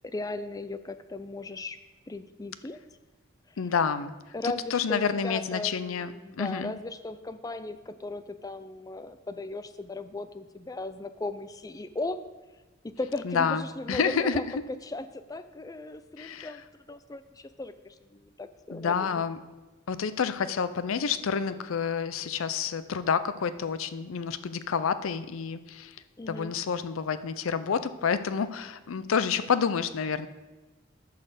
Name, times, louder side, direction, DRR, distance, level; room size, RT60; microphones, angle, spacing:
voice 1, 0.0-1.8 2.1-2.8 4.3-12.2 12.8-14.4 14.8-19.1 26.2-26.5, left 2 dB, 20° left, 11 dB, 0.4 m, -37 dB
voice 2, 3.6-4.1 4.4-6.1 6.4-6.7 13.2-14.4 16.2-16.5 18.7-19.4 19.9-26.0 26.3-30.3, left 6 dB, 85° left, 13 dB, 0.5 m, -29 dB
12.5 x 4.2 x 6.7 m, 1.2 s
head